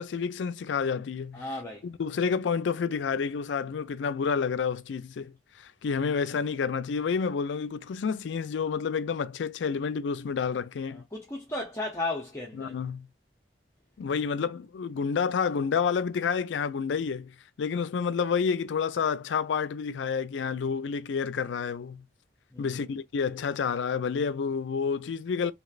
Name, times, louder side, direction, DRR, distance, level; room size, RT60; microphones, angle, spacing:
voice 1, 0.0-1.5 1.8-11.0 12.5-13.1 14.0-22.1 22.6-25.5, left 6 dB, 85° left, 0.4 m, -29 dB
voice 2, 1.3-1.9 10.9-12.8 22.5-22.9, left 2 dB, 15° left, 0.7 m, -35 dB
3.1 x 2.8 x 2.4 m
head